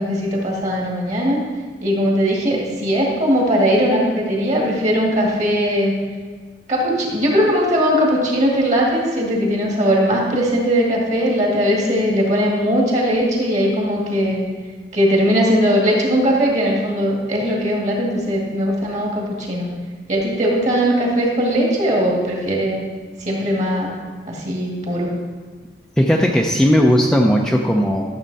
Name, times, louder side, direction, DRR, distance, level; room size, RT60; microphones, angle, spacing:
voice 1, 0.0-1.4 1.8-5.9 6.7-14.5 14.9-19.7 20.1-22.8 23.3-23.9 24.3-25.1, equal, 40° right, -2 dB, 2.1 m, -19 dB
voice 2, 26.0-28.0, equal, 5° left, 0 dB, 0.5 m, -16 dB
12.5 x 7.3 x 4.1 m, 1.5 s
head